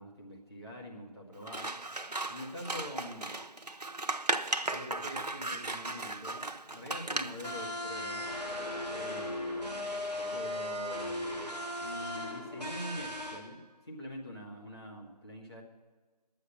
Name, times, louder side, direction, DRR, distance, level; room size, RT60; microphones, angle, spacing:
voice 1, 0.0-1.7 2.1-3.3 4.6-8.3 8.9-10.0 10.3-11.4 11.8-13.6 13.8-15.6, equal, 40° left, -3 dB, 1.6 m, -45 dB
Scissors, 1.4-7.5, right 2 dB, 75° right, 0.7 m, -36 dB
sound 1, 7.4-13.4, left 1 dB, 75° left, 3.2 m, -37 dB
11.5 x 8.9 x 7.2 m, 1.4 s
figure-of-eight pair, 170°, 21 cm